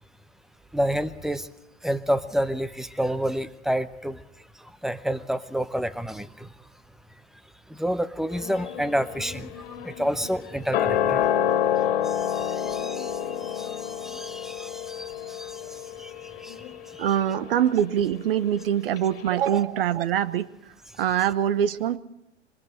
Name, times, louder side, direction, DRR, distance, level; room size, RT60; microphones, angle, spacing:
voice 1, 0.7-1.5 1.8-4.2 4.8-6.5 7.7-11.2 12.0-15.6 16.0-16.1 16.4-16.6 16.9-17.1, equal, ahead, 14 dB, 0.7 m, -29 dB
sound 1, 8.3-18.7 19.0-19.1, left 10 dB, 50° left, 2.2 m, -29 dB
voice 2, 17.0-20.5 21.0-22.0, right 10 dB, 55° right, 15 dB, 1.2 m, -24 dB
26.5 x 23.0 x 4.3 m, 0.87 s
figure-of-eight pair, 100°, 35 cm